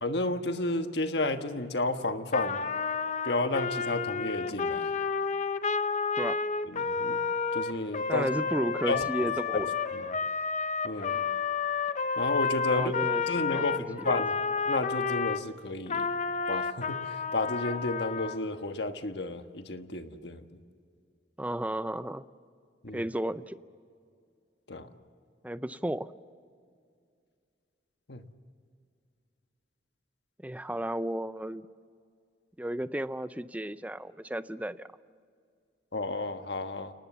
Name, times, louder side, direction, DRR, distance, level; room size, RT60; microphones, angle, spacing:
voice 1, 0.0-2.6 3.2-4.9 6.6-7.2 7.5-8.3 8.9-9.3 9.6-10.2 10.8-11.2 12.2-12.9 13.3-14.3 14.7-16.1 16.5-20.5 22.8-23.0 24.7-24.9 28.1-28.2 35.9-36.9, left 2 dB, 70° left, 7 dB, 1.4 m, -32 dB
Trumpet, 2.3-15.4 15.9-18.4, left 5 dB, 40° left, 0.7 m, -31 dB
voice 2, 8.1-9.7 12.7-13.2 13.5-14.0 21.4-22.2 22.9-23.6 25.4-26.1 30.4-31.7 32.6-34.9, right 1 dB, 10° right, 14 dB, 0.5 m, -33 dB
30.0 x 19.0 x 7.2 m, 2.3 s
head